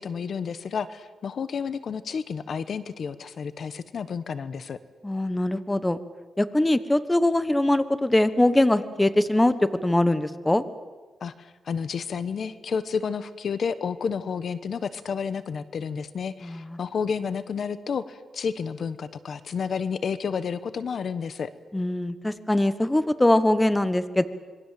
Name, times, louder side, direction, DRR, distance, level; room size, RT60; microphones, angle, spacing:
voice 1, 0.0-4.8 11.2-21.5, left 6 dB, 65° left, 14 dB, 1.1 m, -31 dB
voice 2, 5.0-6.0 6.4-9.5 9.8-10.6 16.4-16.6 21.7-24.2, left 1 dB, 15° left, 13 dB, 1.3 m, -22 dB
26.5 x 23.0 x 7.6 m, 1.4 s
cardioid pair, 95°, 0 cm